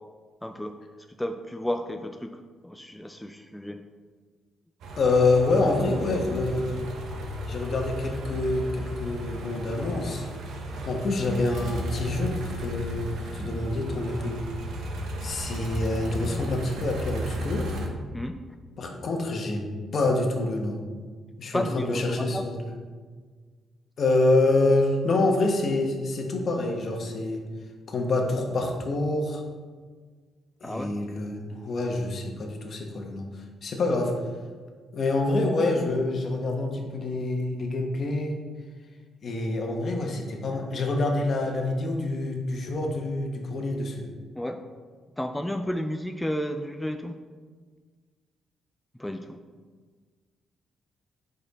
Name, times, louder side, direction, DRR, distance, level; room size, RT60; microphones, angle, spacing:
voice 1, 0.4-0.8 1.2-2.4 2.6-3.8 18.1-18.4 21.5-22.4 30.6-31.0 44.4-44.6 45.2-47.1 49.0-49.4, equal, 5° left, 6 dB, 0.4 m, -32 dB
sound 1, 4.8-17.9, equal, 80° right, 0.9 m, -34 dB
voice 2, 5.0-6.8 7.5-10.3 10.9-14.4 15.2-17.8 18.8-19.6 19.9-20.8 21.4-22.6 24.0-27.4 27.9-29.4 30.6-34.1 34.9-38.4 39.2-44.0, left 2 dB, 55° left, 2 dB, 1.1 m, -26 dB
5.2 x 5.0 x 4.1 m, 1.5 s
cardioid pair, 75°, 0 cm